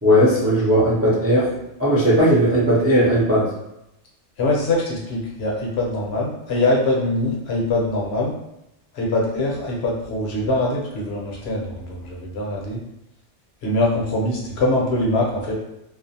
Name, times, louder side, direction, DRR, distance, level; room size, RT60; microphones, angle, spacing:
voice 1, 0.0-3.5, equal, 20° right, -8 dB, 0.4 m, -17 dB
voice 2, 4.4-8.3 8.9-12.8 13.6-15.5, left 2 dB, 65° left, -3 dB, 0.8 m, -23 dB
2.4 x 2.1 x 2.7 m, 0.85 s
omnidirectional pair, 1.2 m